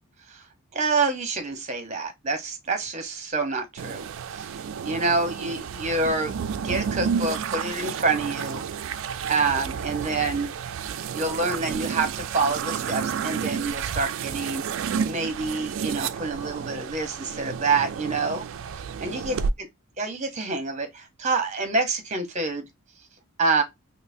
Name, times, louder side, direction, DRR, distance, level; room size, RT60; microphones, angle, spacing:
voice 1, 0.7-4.1 4.3-4.6 4.8-6.3 6.6-8.6 9.3-10.5 11.1-14.6 15.0-18.5 19.0-19.4 20.0-22.6 23.4-23.6, right 3 dB, 30° right, 0.8 m, -27 dB
sound 1, 3.8-19.5, right 6 dB, 55° right, 0.3 m, -31 dB
5.4 x 2.0 x 2.5 m
head